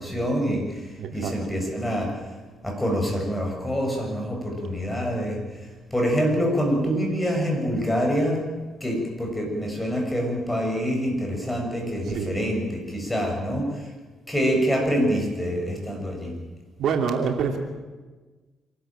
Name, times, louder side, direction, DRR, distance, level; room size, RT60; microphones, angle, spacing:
voice 1, 0.0-2.1 2.6-5.4 5.9-8.4 8.8-13.9 14.3-16.4, equal, 10° left, 1 dB, 7.2 m, -26 dB
voice 2, 1.0-1.4 12.1-12.4 16.8-17.6, right 6 dB, 70° right, 3 dB, 2.7 m, -26 dB
26.5 x 13.0 x 9.0 m, 1.3 s
cardioid pair, 90°, 0 cm